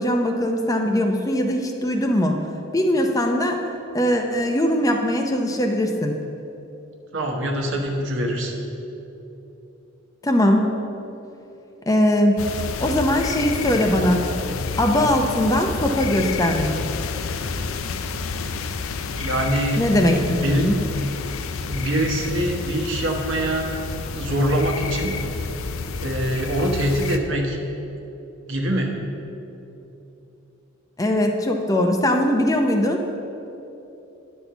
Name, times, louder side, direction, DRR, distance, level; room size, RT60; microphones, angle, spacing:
voice 1, 0.0-2.4 2.7-3.6 3.9-6.2 10.2-10.7 11.9-12.4 12.8-14.3 14.8-16.7 19.8-20.7 31.0-33.0, left 1 dB, 15° left, 3 dB, 0.5 m, -20 dB
voice 2, 7.1-8.6 19.1-19.8 20.2-20.7 21.6-23.7 24.1-25.2 26.0-27.6 28.5-28.9, right 1 dB, 65° right, 2 dB, 1.1 m, -24 dB
sound 1, 12.4-27.2, left 4 dB, 80° left, 0.5 m, -29 dB
10.5 x 4.3 x 6.9 m, 3.0 s
head